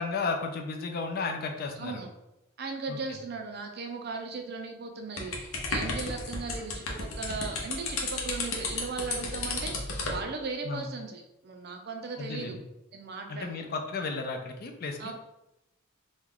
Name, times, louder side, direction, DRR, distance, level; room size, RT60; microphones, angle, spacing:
voice 1, 0.0-2.0 2.9-3.0 10.6-10.9 12.2-12.6 13.3-15.1, left 4 dB, 45° left, 4 dB, 0.4 m, -33 dB
voice 2, 1.8-2.1 2.6-12.6 12.9-13.7 15.0-15.1, right 4 dB, 50° right, 4 dB, 0.5 m, -37 dB
sound 1, 5.2-10.2, left 3 dB, 85° left, 0.7 m, -33 dB
3.0 x 2.3 x 3.6 m, 0.91 s
head